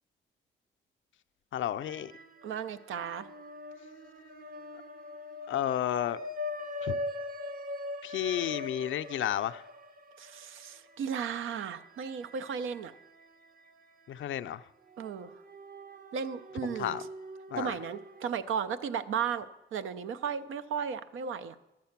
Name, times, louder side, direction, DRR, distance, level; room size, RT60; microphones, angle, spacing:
voice 1, 1.5-2.1 5.5-6.2 6.8-7.0 8.0-9.6 14.1-14.6 16.6-17.0 17.5-17.8, left 11 dB, 75° left, 0.4 m, -32 dB
sound 1, 1.8-2.6 2.9-13.3 13.7-13.8 14.9-18.3, left 1 dB, 45° right, 0.9 m, -42 dB
voice 2, 2.4-3.3 10.2-12.9 15.0-15.3 16.1-17.0 17.6-21.6, right 7 dB, 85° right, 0.5 m, -35 dB
11.5 x 7.4 x 5.9 m
cardioid pair, 60°, 20 cm